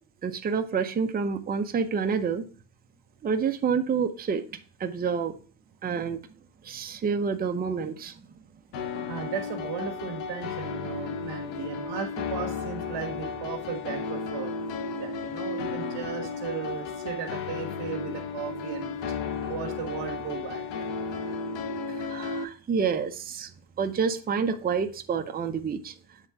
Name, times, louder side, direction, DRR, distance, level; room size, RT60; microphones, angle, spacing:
voice 1, 0.2-2.5 3.2-5.4 5.8-6.2 6.6-8.2 21.9-23.5 23.8-25.9, right 6 dB, 20° right, 6 dB, 0.6 m, -28 dB
sound 1, 8.7-22.4, left 5 dB, 70° left, 0.9 m, -34 dB
voice 2, 8.9-14.5 15.0-19.2 19.5-20.6 21.1-21.3, right 7 dB, 65° right, -1 dB, 1.5 m, -36 dB
8.2 x 3.7 x 4.7 m, 0.40 s
cardioid pair, 140°, 46 cm